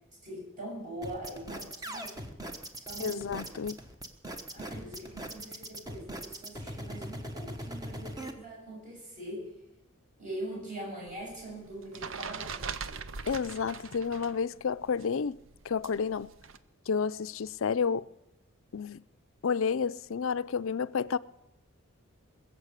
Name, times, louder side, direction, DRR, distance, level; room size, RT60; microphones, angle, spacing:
voice 1, 0.2-2.3 2.8-3.4 4.5-9.5 10.2-13.0, right 1 dB, 40° right, 7.3 m, -42 dB
sound 1, 1.0-8.3, right 1 dB, 15° right, 1.1 m, -40 dB
voice 2, 3.0-3.8 13.3-15.4 15.6-16.3 16.9-18.1 18.7-19.0 19.4-21.2, left 6 dB, 70° left, 0.5 m, -30 dB
sound 2, 11.1-14.4 14.7-16.6, right 5 dB, 65° right, 0.7 m, -41 dB
21.0 x 7.3 x 8.2 m
head